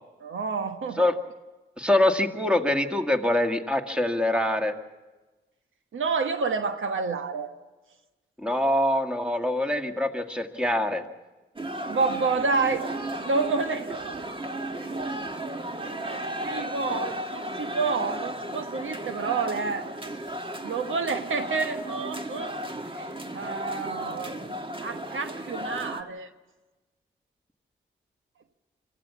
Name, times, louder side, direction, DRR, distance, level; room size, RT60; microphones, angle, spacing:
voice 1, 0.2-1.0 5.9-7.5 11.9-12.8 13.2-14.2 16.0-19.9 20.6-22.5 22.9-24.3 24.8-26.3, right 4 dB, 70° right, 8 dB, 1.2 m, -29 dB
voice 2, 1.8-4.8 8.4-11.0, left 1 dB, 5° right, 5 dB, 2.0 m, -24 dB
sound 1, 11.6-26.0, right 1 dB, 25° right, 1.5 m, -34 dB
25.0 x 14.5 x 7.1 m, 1.2 s
supercardioid pair, 40°, 21 cm